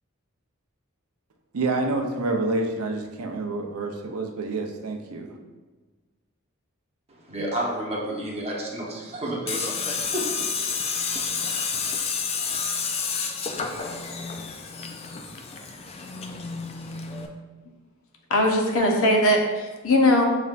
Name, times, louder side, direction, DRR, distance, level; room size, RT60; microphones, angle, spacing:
voice 1, 1.5-5.3, right 2 dB, 80° right, 3 dB, 0.6 m, -28 dB
voice 2, 7.3-10.3, right 1 dB, 30° right, -3 dB, 0.9 m, -31 dB
Tools, 9.5-17.3, left 5 dB, 30° left, 0.3 m, -30 dB
voice 3, 18.3-20.2, left 1 dB, 65° left, 2 dB, 0.7 m, -20 dB
6.3 x 3.3 x 2.4 m, 1.3 s
head